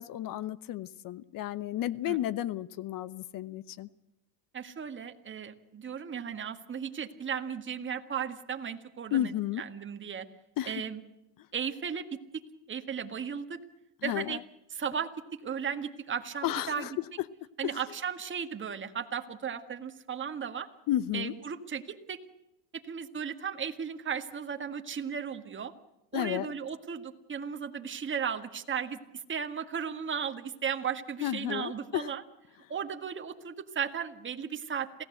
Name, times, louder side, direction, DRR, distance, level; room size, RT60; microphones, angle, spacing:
voice 1, 0.0-3.9 9.1-9.6 10.6-10.8 14.0-14.4 16.4-17.0 17.6-17.7 20.9-21.3 26.1-26.5 31.2-32.1, left 13 dB, 45° left, 18 dB, 0.9 m, -32 dB
voice 2, 4.5-10.3 10.7-11.0 11.5-12.4 12.7-13.6 14.0-14.4 14.7-16.9 17.6-20.7 21.1-22.2 22.7-25.7 26.1-32.2 32.7-35.0, right 7 dB, 25° right, 6 dB, 1.9 m, -35 dB
27.5 x 17.0 x 7.9 m, 0.94 s
supercardioid pair, 125°, 48 cm